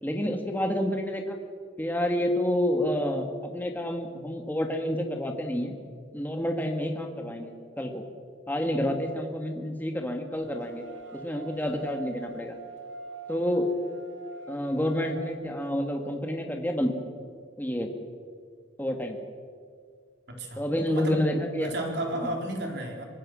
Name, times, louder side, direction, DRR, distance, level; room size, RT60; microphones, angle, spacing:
voice 1, 0.0-1.4 1.8-5.8 6.1-8.0 8.5-10.8 11.1-12.6 13.3-13.7 14.5-16.9 17.6-17.9 18.8-19.2 20.6-21.7 22.2-22.3, equal, 10° left, 3 dB, 1.8 m, -29 dB
sound 1, 10.3-15.3, right 3 dB, 75° right, 3.3 m, -44 dB
voice 2, 20.3-21.3 21.6-23.0, right 1 dB, 55° right, 1 dB, 4.2 m, -33 dB
25.0 x 19.5 x 6.3 m, 2.1 s
head